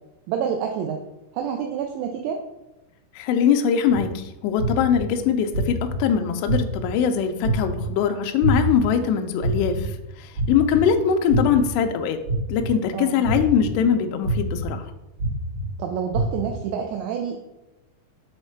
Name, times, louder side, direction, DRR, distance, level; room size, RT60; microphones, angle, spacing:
voice 1, 0.3-1.0 1.3-2.4 12.9-13.2 15.8-17.4, right 7 dB, 90° right, 3 dB, 2.4 m, -28 dB
voice 2, 3.1-12.2 12.5-14.9, left 7 dB, 85° left, 6 dB, 2.5 m, -22 dB
sound 1, 3.9-4.0 4.6-5.0 5.5-6.0 6.5-6.9 7.4-7.9 8.4-8.8 9.4-9.8 10.4-10.8 11.3-11.7 12.3-12.7 13.2-13.7 14.2-14.7 15.2-15.6 16.1-16.5, right 2 dB, 50° right, 3.0 m, -24 dB
7.1 x 3.2 x 4.4 m, 0.96 s
omnidirectional pair, 5.5 m